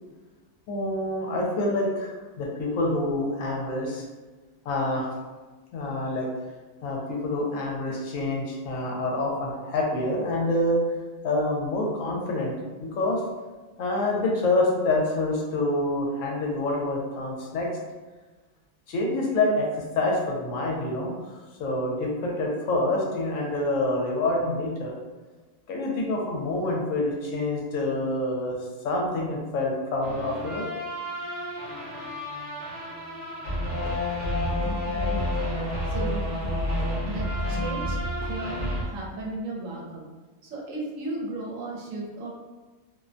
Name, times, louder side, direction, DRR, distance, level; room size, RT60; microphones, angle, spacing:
voice 1, 0.7-4.0 4.6-5.1 5.7-6.3 6.8-10.8 11.2-12.5 12.8-13.2 13.8-17.7 18.9-24.9 25.7-28.6 28.8-30.7, left 2 dB, 75° left, -1 dB, 0.9 m, -27 dB
sound 1, 30.0-38.8, left 1 dB, 40° right, 0.7 m, -30 dB
voice 2, 34.8-35.4 35.9-36.2 37.0-38.0 38.2-40.1 40.4-42.3, right 2 dB, 75° right, -2 dB, 1.0 m, -35 dB
2.5 x 2.1 x 2.5 m, 1.3 s
omnidirectional pair, 1.4 m